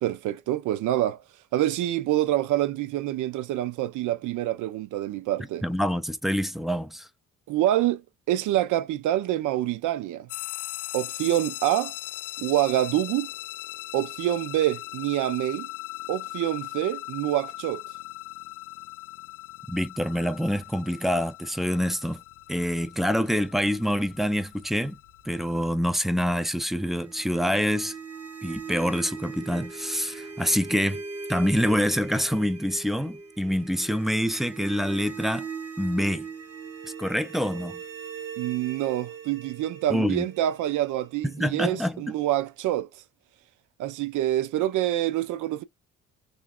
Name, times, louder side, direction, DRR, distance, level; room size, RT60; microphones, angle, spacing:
voice 1, 0.0-1.2 1.5-5.6 7.5-10.3 10.9-11.9 12.4-13.3 13.9-15.7 16.1-17.8 38.4-42.9 43.8-45.6, right 13 dB, 80° right, 0.5 m, -26 dB
voice 2, 5.6-7.1 19.7-22.2 22.5-25.0 25.3-27.9 28.4-31.0 31.3-35.5 35.8-36.3 37.0-37.8 39.9-40.3 41.2-42.0, equal, ahead, 0.4 m, -26 dB
sound 1, 10.3-25.7, left 17 dB, 80° left, 0.5 m, -39 dB
sound 2, 26.8-41.7, right 5 dB, 55° right, 1.2 m, -40 dB
2.9 x 2.7 x 2.3 m
cardioid pair, 90°, 30 cm